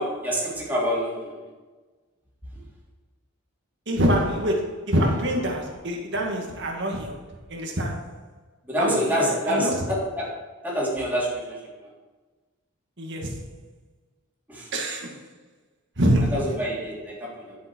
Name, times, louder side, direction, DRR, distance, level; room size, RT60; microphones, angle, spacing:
voice 1, 0.0-1.5 8.7-11.9 14.5-14.7 16.3-17.6, equal, 10° right, -6 dB, 3.6 m, -27 dB
voice 2, 3.9-7.2 7.5-8.1 8.8-9.8 13.0-13.4 14.7-15.2 16.0-16.4, equal, 60° right, 1 dB, 2.0 m, -25 dB
11.0 x 7.4 x 4.6 m, 1.3 s
head